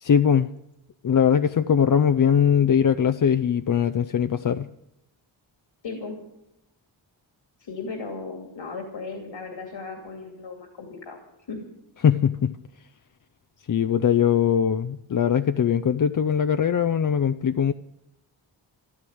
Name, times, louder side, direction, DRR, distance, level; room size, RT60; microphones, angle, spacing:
voice 1, 0.0-0.5 1.0-4.7 12.0-12.5 13.7-17.7, left 8 dB, 45° left, 11 dB, 0.6 m, -21 dB
voice 2, 5.8-6.2 7.6-11.2 11.5-11.7, left 4 dB, 70° left, 3 dB, 2.5 m, -36 dB
13.5 x 12.5 x 7.9 m, 0.84 s
cardioid pair, 65°, 46 cm